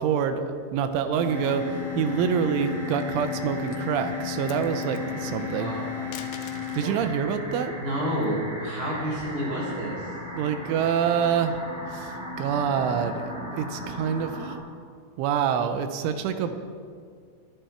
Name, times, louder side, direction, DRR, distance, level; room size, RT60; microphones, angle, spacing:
voice 1, 0.0-5.7 6.7-7.7 10.4-11.6 11.9-12.1 12.4-14.5 15.2-16.6, right 7 dB, 85° right, 8 dB, 3.4 m, -26 dB
sound 1, 1.1-7.1, left 13 dB, 40° left, 2.0 m, -35 dB
sound 2, 1.3-14.5, left 1 dB, 50° right, 0.8 m, -37 dB
sound 3, 2.7-3.2 3.6-3.9 4.3-5.0 6.0-7.0 8.5-9.7, left 10 dB, 80° left, 2.9 m, -45 dB
voice 2, 4.7-6.1 6.8-6.9 7.8-10.1, equal, 20° right, -4 dB, 4.7 m, -31 dB
24.0 x 10.5 x 4.6 m, 2.1 s
omnidirectional pair, 5.5 m